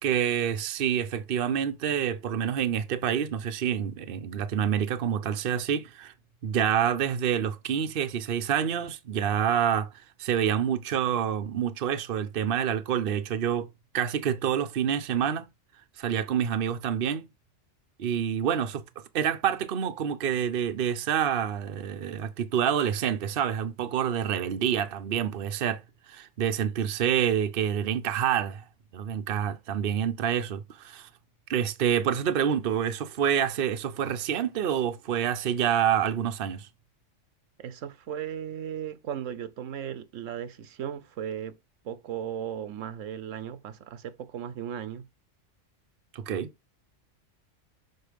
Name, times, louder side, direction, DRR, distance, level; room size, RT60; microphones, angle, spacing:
voice 1, 0.0-6.1 6.4-9.9 10.2-13.7 13.9-15.5 16.0-17.2 18.0-18.8 19.1-25.8 26.1-28.6 28.9-31.1 31.5-36.7 46.1-46.5, right 9 dB, 50° right, 0.9 m, -27 dB
voice 2, 37.6-41.6 41.8-45.1, right 9 dB, 85° right, 1.1 m, -36 dB
6.5 x 4.4 x 5.1 m
omnidirectional pair, 1.3 m